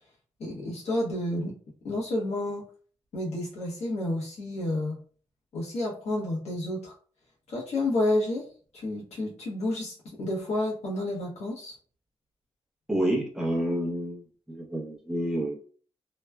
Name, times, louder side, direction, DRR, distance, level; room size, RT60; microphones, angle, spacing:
voice 1, 0.4-1.5 1.8-2.6 3.1-5.0 5.5-6.9 7.5-8.4 8.7-11.7, left 1 dB, 85° left, -4 dB, 1.1 m, -30 dB
voice 2, 12.9-15.6, right 1 dB, 5° right, -3 dB, 0.7 m, -29 dB
3.0 x 2.3 x 2.2 m, 0.43 s
wide cardioid pair, 125°, 11 cm